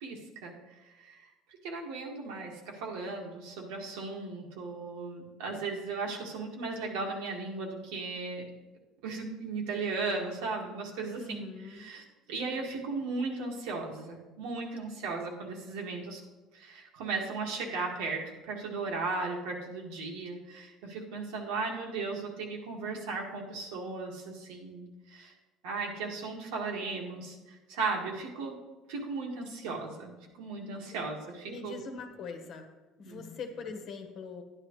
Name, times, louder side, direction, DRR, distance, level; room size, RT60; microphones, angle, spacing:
voice 1, 0.0-0.5 1.0-1.2 1.6-8.4 9.0-11.5 11.7-16.2 16.5-25.3 25.6-28.6 28.9-31.8 33.0-33.4, right 3 dB, 90° right, 0 dB, 1.9 m, -36 dB
voice 2, 11.2-11.9 30.7-31.1 31.5-32.7 33.0-34.4, left 4 dB, 50° left, 5 dB, 1.2 m, -42 dB
12.0 x 9.8 x 3.2 m, 1.2 s
cardioid pair, 135°, 0 cm